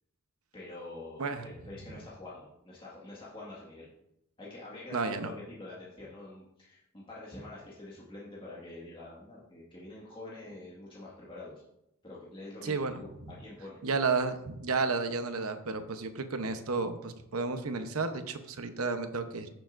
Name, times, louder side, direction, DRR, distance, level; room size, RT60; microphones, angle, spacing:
voice 1, 0.5-3.9 4.4-11.5 12.0-13.8, left 2 dB, 25° left, -6 dB, 1.8 m, -46 dB
voice 2, 4.9-5.3 12.6-13.3 13.8-19.5, right 4 dB, 80° right, 8 dB, 0.9 m, -32 dB
15.5 x 6.9 x 2.6 m, 0.82 s
head